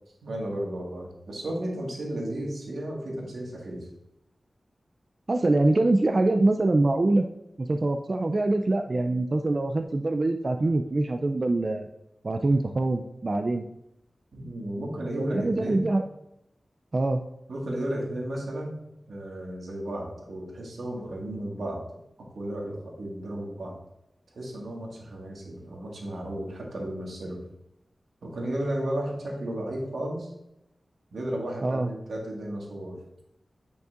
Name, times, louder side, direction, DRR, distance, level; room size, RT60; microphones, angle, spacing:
voice 1, 0.2-3.9 14.3-15.9 17.5-18.7 19.1-21.8 22.3-23.7 24.3-27.4 28.2-30.3 31.1-33.0, right 1 dB, 85° right, -1 dB, 1.7 m, -33 dB
voice 2, 5.3-7.3 7.6-11.9 12.2-13.7 15.2-16.0 16.9-17.2 31.6-31.9, right 2 dB, 50° right, 6 dB, 0.4 m, -24 dB
9.2 x 5.4 x 2.5 m, 0.85 s
wide cardioid pair, 65°, 0 cm